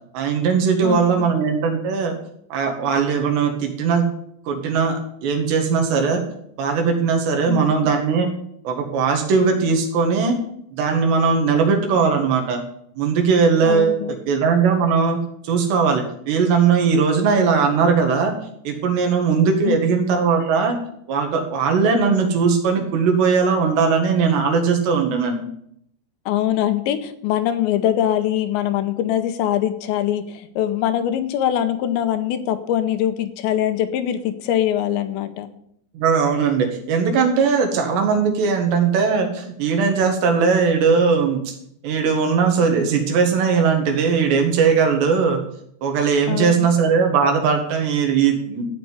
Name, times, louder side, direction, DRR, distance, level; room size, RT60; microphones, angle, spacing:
voice 1, 0.1-2.1 2.5-4.0 4.5-6.2 6.6-8.3 8.7-10.4 10.7-12.6 13.0-15.2 15.4-18.3 18.7-20.8 21.1-25.4 36.0-41.6 41.8-45.4 45.8-48.7, right 5 dB, 75° right, 4 dB, 4.0 m, -19 dB
voice 2, 0.8-1.3 7.5-7.8 13.7-14.1 19.6-19.8 26.3-35.5 46.3-46.7, left 11 dB, 80° left, 10 dB, 3.1 m, -23 dB
14.0 x 5.3 x 9.4 m, 0.71 s
omnidirectional pair, 5.1 m